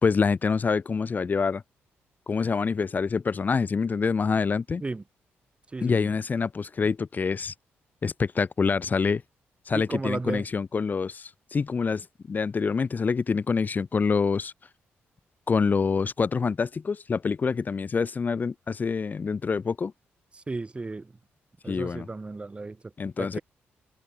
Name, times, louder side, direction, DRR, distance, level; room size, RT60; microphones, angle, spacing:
voice 1, 0.0-1.6 2.3-4.8 5.8-7.5 8.0-9.2 9.7-14.5 15.5-19.9 21.7-22.1 23.0-23.4, left 5 dB, 40° left, 1.3 m, -26 dB
voice 2, 5.7-6.1 9.7-10.5 20.3-21.2 21.6-22.9 23.2-23.4, right 3 dB, 25° right, 4.2 m, -34 dB
cardioid pair, 85°, 5 cm